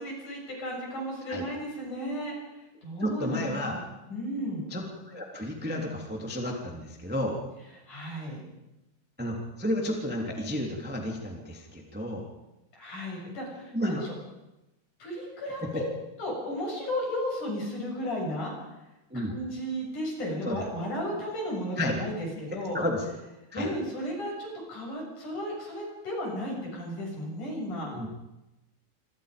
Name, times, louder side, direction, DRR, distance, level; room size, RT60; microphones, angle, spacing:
voice 1, 0.0-2.3 2.8-4.7 7.9-8.4 12.7-14.1 15.0-15.8 16.2-18.5 19.3-22.8 23.5-28.0, equal, 50° left, -1 dB, 8.7 m, -34 dB
voice 2, 3.0-3.8 4.7-7.4 9.2-12.3 13.7-14.0 15.6-15.8 19.1-19.3 20.4-20.6 21.8-22.0 22.7-23.0 23.5-23.7 27.9-28.1, equal, 5° right, 0 dB, 2.5 m, -32 dB
28.0 x 25.5 x 5.3 m, 0.98 s
omnidirectional pair, 4.6 m